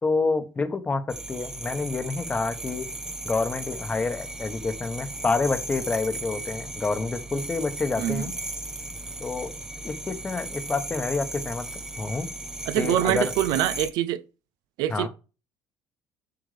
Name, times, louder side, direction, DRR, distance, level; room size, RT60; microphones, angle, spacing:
voice 1, 0.0-2.9 3.2-8.3 9.2-9.5 9.8-11.7 12.0-12.3 12.8-13.3 14.9-15.1, left 4 dB, 20° left, 1.1 m, -28 dB
sound 1, 1.1-13.9, right 1 dB, 10° right, 0.7 m, -36 dB
voice 2, 12.7-14.2 14.8-15.1, right 12 dB, 80° right, 0.6 m, -24 dB
7.8 x 6.8 x 3.3 m
cardioid pair, 140°, 7 cm